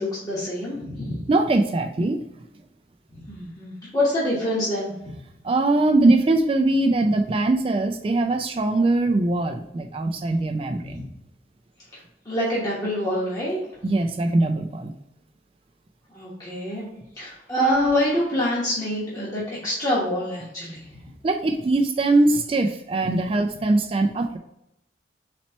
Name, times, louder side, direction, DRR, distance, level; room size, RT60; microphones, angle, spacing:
voice 1, 0.0-1.2 3.1-4.9 10.8-11.0 12.2-13.6 16.1-20.9, left 1 dB, 20° left, -8 dB, 1.1 m, -26 dB
voice 2, 1.3-2.2 5.4-11.0 13.8-14.9 21.2-24.4, right 2 dB, 30° right, 5 dB, 0.3 m, -21 dB
4.2 x 2.9 x 4.2 m, 0.82 s
head